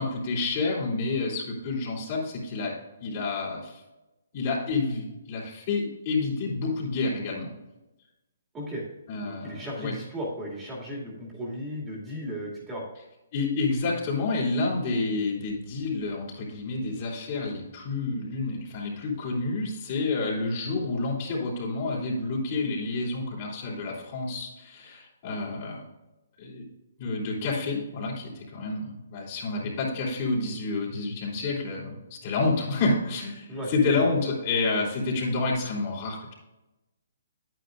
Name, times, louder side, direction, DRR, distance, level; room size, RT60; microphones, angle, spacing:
voice 1, 0.0-2.7 3.0-3.8 4.3-7.5 9.1-9.9 13.3-25.8 26.4-26.6 27.0-36.3, left 3 dB, 40° left, -3 dB, 3.3 m, -29 dB
voice 2, 8.5-8.8 9.2-12.8 33.5-34.1, equal, 15° right, -4 dB, 2.3 m, -35 dB
9.3 x 9.2 x 2.5 m, 0.99 s
hypercardioid pair, 155°, 0 cm